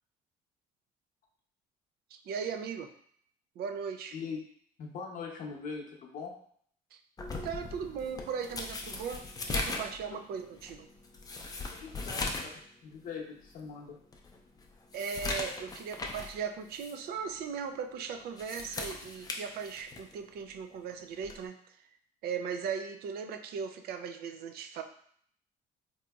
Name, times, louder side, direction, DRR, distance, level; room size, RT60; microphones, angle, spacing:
voice 1, 2.1-2.9 3.6-4.2 6.9-7.0 7.4-10.9 14.9-21.6 22.2-24.8, right 6 dB, 65° right, 6 dB, 0.4 m, -38 dB
voice 2, 4.8-6.3 10.1-10.2 11.7-14.0, left 5 dB, 55° left, 0 dB, 0.8 m, -41 dB
sound 1, 7.2-12.6 12.9-13.0 13.6-13.7 14.1-16.4 16.7-17.0 18.2-20.1 21.2-21.5, left 3 dB, 20° left, 0.5 m, -38 dB
3.9 x 2.8 x 2.3 m, 0.63 s
cardioid pair, 110°, 17 cm